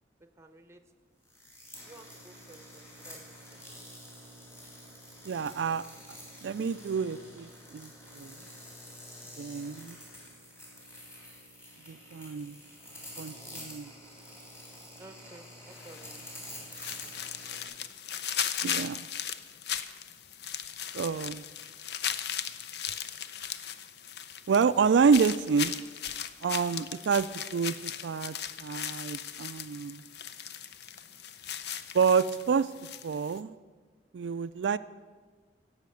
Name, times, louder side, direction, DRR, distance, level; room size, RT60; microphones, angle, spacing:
voice 1, 0.4-0.8 1.8-3.2 3.5-3.6 5.7-6.0 15.0-16.2, right 2 dB, 15° right, 8 dB, 0.8 m, -53 dB
sound 1, 1.2-17.6, left 1 dB, 15° left, 3.4 m, -48 dB
voice 2, 5.3-5.9 6.4-8.4 9.4-10.0 11.9-12.6 13.2-13.9 18.6-19.1 20.9-21.4 24.5-25.8 26.4-30.0 31.9-32.7 33.0-33.5 34.1-34.8, right 5 dB, 90° right, 12 dB, 0.4 m, -28 dB
sound 2, 15.7-33.4, left 9 dB, 65° left, 0.6 m, -38 dB
16.5 x 5.7 x 7.8 m, 1.4 s
head